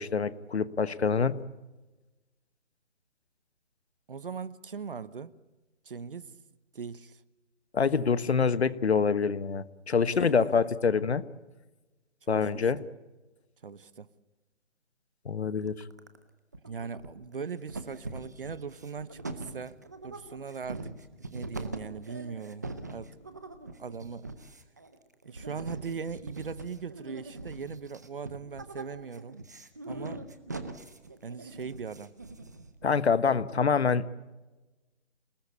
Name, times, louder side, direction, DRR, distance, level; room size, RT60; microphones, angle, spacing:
voice 1, 0.0-1.4 7.7-11.2 12.3-12.8 15.2-15.8 32.8-34.1, left 5 dB, 60° left, 16 dB, 1.4 m, -26 dB
voice 2, 4.1-5.3 5.9-6.3 6.7-7.2 10.1-10.7 12.2-12.7 13.6-14.1 16.6-21.0 21.3-23.2 23.8-24.3 25.2-29.4 29.9-30.3 31.2-32.1, right 5 dB, 50° right, 18 dB, 1.0 m, -40 dB
sound 1, 15.7-16.2 16.5-17.4 17.7-32.8, right 2 dB, 15° right, 0.7 m, -42 dB
28.0 x 19.0 x 8.4 m, 1.1 s
hypercardioid pair, 170°, 36 cm